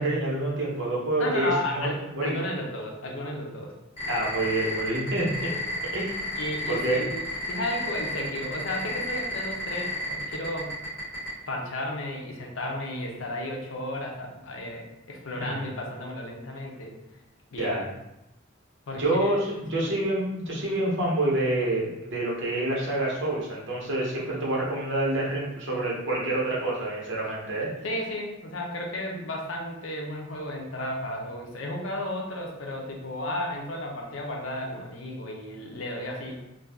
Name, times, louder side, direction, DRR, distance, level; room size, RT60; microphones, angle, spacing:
voice 1, 0.0-1.9 2.1-2.4 4.1-5.5 5.9-6.2 6.7-7.2 15.4-15.7 17.5-17.8 18.9-27.7, right 1 dB, 65° right, -5 dB, 0.9 m, -27 dB
voice 2, 1.2-3.7 5.2-5.6 6.4-7.2 7.5-10.8 11.5-16.9 17.5-17.7 18.9-19.4 19.7-19.9 27.8-36.4, left 1 dB, 70° left, 0 dB, 0.6 m, -33 dB
sound 1, 4.0-11.3, left 1 dB, 35° left, 1.3 m, -33 dB
2.6 x 2.3 x 3.4 m, 0.92 s
head